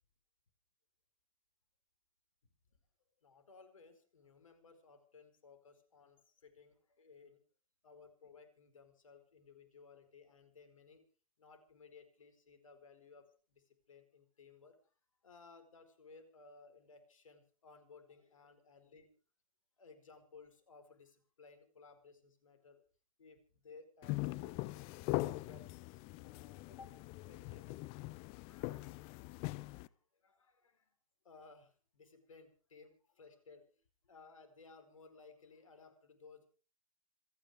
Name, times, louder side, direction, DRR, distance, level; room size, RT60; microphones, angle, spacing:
voice 1, 3.2-7.4 7.8-11.0 11.4-14.9 15.2-19.1 19.8-22.8 23.2-24.9 25.2-27.0 27.3-27.8 28.3-30.9 31.2-33.8 34.0-36.5, left 4 dB, 75° left, 9 dB, 4.8 m, -60 dB
sound 1, 24.0-29.9, left 20 dB, 35° left, 0.7 m, -41 dB
26.5 x 10.0 x 5.0 m, 0.39 s
figure-of-eight pair, 115°, 17 cm